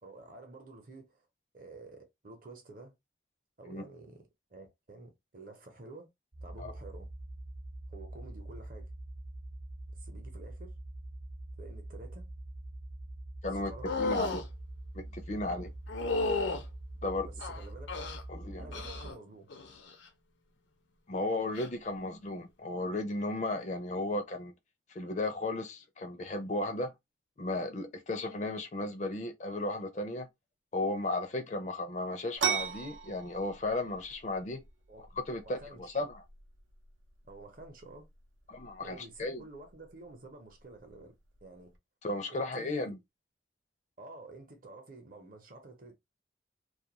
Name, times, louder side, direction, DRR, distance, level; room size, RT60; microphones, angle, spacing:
voice 1, 0.0-1.3 1.5-3.0 3.6-6.1 6.4-7.1 7.9-8.9 10.0-10.7 11.6-12.3 13.5-14.2 15.4-15.7 17.0-17.9 18.6-19.5 34.9-36.0 37.2-38.1 38.8-41.1 41.4-41.7 42.3-43.0 44.0-45.9, right 2 dB, 45° right, 0.7 m, -50 dB
sound 1, 6.3-19.1, right 1 dB, 25° right, 0.4 m, -44 dB
sound 2, 13.8-14.5 15.9-16.6 17.4-18.2 18.7-19.1 19.5-19.9 21.5-21.7, left 3 dB, 80° left, 0.6 m, -33 dB
voice 2, 14.0-14.4 14.9-15.7 17.0-17.3 18.3-18.7 21.1-24.5 24.9-26.9 27.4-30.3 30.7-34.6 35.2-36.2 38.5-39.4 42.0-43.0, left 2 dB, 40° left, 0.4 m, -35 dB
sound 3, 32.4-41.8, right 7 dB, 85° right, 0.6 m, -41 dB
2.4 x 2.2 x 2.9 m
head